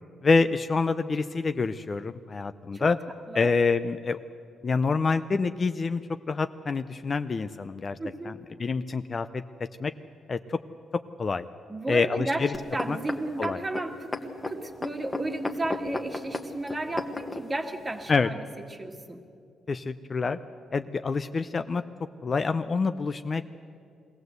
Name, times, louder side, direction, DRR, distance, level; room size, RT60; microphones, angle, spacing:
voice 1, 0.2-3.0 3.3-4.2 4.6-6.0 6.3-8.0 8.2-9.4 9.8-9.9 10.3-10.6 11.2-11.5 11.9-12.5 12.9-13.0 13.4-13.6 18.1-18.3 19.7-20.4 20.7-21.8 22.2-23.5, left 4 dB, 30° left, 10 dB, 0.5 m, -26 dB
voice 2, 8.0-8.4 11.7-19.2, right 2 dB, 20° right, 5 dB, 1.5 m, -34 dB
sound 1, 12.5-17.4 18.1-18.2, left 2 dB, 15° left, 1.3 m, -33 dB
22.0 x 16.5 x 8.1 m, 2.4 s
cardioid pair, 125°, 0 cm